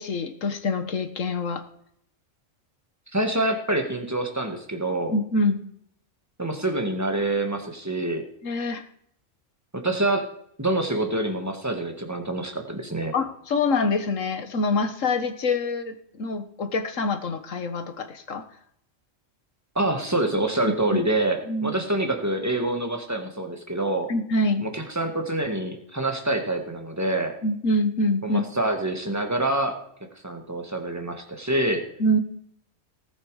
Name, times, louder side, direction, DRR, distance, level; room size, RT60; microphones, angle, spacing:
voice 1, 0.0-1.6 5.1-5.6 8.4-8.8 13.1-18.4 20.9-21.0 21.5-21.7 24.1-24.6 27.4-28.4 32.0-32.2, left 2 dB, 75° left, 9 dB, 1.7 m, -25 dB
voice 2, 3.1-5.1 6.4-8.2 9.7-10.3 10.6-13.1 19.8-24.1 24.6-27.3 28.2-29.8 30.2-31.8, right 2 dB, 10° right, 4 dB, 1.8 m, -26 dB
18.5 x 8.2 x 4.9 m, 0.70 s
omnidirectional pair, 1.4 m